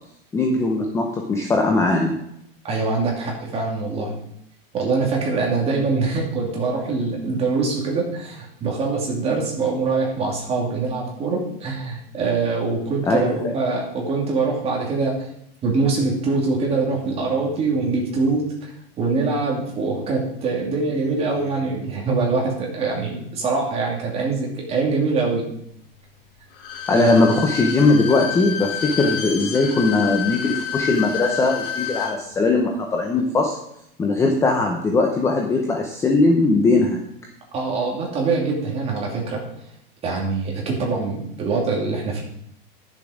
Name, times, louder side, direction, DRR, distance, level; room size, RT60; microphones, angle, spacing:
voice 1, 0.3-2.1 13.0-13.5 26.9-33.5 34.0-37.0, left 3 dB, 10° left, 2 dB, 0.7 m, -19 dB
voice 2, 2.6-4.1 4.7-15.3 15.6-18.7 19.0-25.4 27.0-27.2 37.5-39.4 40.0-42.2, right 4 dB, 20° right, -1 dB, 2.6 m, -23 dB
Bowed string instrument, 26.5-32.2 32.5-32.6, left 9 dB, 65° left, 2.2 m, -29 dB
11.5 x 7.1 x 4.9 m, 0.74 s
supercardioid pair, 160°, 30 cm